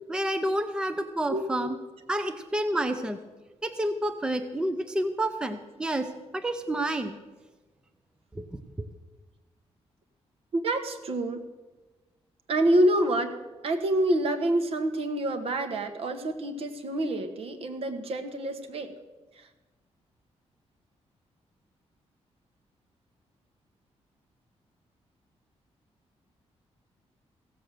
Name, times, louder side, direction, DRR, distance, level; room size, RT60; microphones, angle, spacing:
voice 1, 0.1-1.8 2.1-3.2 3.6-6.1 6.3-7.2 8.3-8.5 8.8-8.9, right 1 dB, 10° right, 8 dB, 0.6 m, -29 dB
voice 2, 1.3-1.7 10.5-11.4 12.5-13.3 13.6-18.9 19.3-19.5, right 1 dB, 60° right, 7 dB, 1.2 m, -27 dB
16.0 x 7.5 x 6.6 m, 1.2 s
wide cardioid pair, 165°, 11 cm